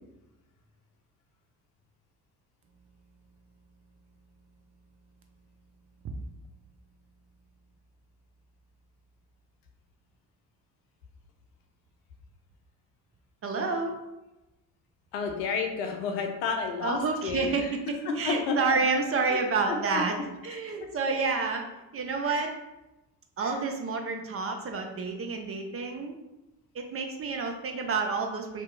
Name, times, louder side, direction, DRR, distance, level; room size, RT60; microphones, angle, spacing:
voice 1, 13.4-14.0 16.8-17.8 18.2-20.2 20.4-21.7 21.9-22.5 23.4-26.2 26.7-28.6, right 4 dB, 30° right, 4 dB, 0.5 m, -29 dB
voice 2, 15.1-17.7 18.1-18.8 19.3-19.4 19.7-20.0 20.5-20.9 22.2-22.4 23.4-23.6, left 4 dB, 80° left, 3 dB, 0.6 m, -31 dB
2.8 x 2.2 x 3.7 m, 0.98 s
hypercardioid pair, 50°, 46 cm